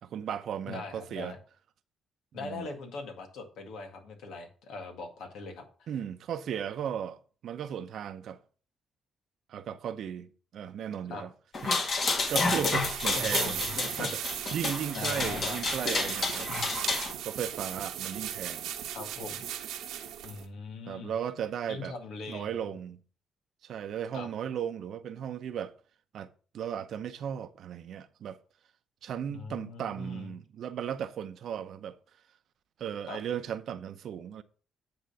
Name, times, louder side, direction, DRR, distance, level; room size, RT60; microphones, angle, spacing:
voice 1, 0.0-1.3 2.4-2.7 5.9-8.4 9.5-11.3 11.6-11.8 12.3-13.6 14.0-14.2 14.5-16.5 17.2-18.7 20.9-21.9 22.3-23.0 23.6-25.7 26.1-26.3 26.5-28.4 29.0-32.0 32.8-34.4, right 8 dB, 65° right, 0.8 m, -36 dB
voice 2, 0.7-1.4 2.3-5.9 11.1-11.2 13.2-14.1 14.9-15.6 18.9-19.4 20.2-21.1 21.7-22.6 24.1-24.3 29.3-30.4 33.1-33.2, left 3 dB, 80° left, 2.0 m, -41 dB
sound 1, 11.5-17.1, left 3 dB, 45° left, 2.1 m, -30 dB
sound 2, 12.2-20.4, right 10 dB, 90° right, 1.2 m, -37 dB
9.6 x 3.9 x 6.8 m
cardioid pair, 100°, 0 cm